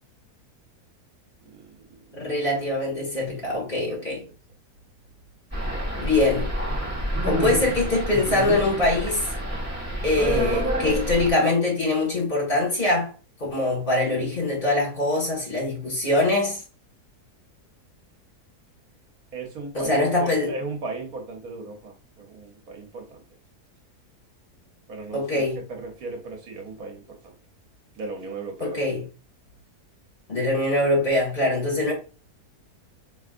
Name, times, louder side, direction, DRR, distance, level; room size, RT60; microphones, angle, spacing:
voice 1, 1.4-2.2 3.5-4.2 19.3-23.2 24.9-27.4 27.9-28.9, right 3 dB, 70° right, 1.4 m, -37 dB
voice 2, 2.2-4.2 5.9-6.5 7.2-9.3 10.0-13.1 13.4-16.6 19.7-20.5 25.1-25.6 28.6-29.0 30.3-31.9, left 2 dB, 35° left, 2.0 m, -23 dB
sound 1, 5.5-11.3, equal, 10° right, 1.2 m, -28 dB
4.7 x 3.2 x 2.4 m
omnidirectional pair, 1.7 m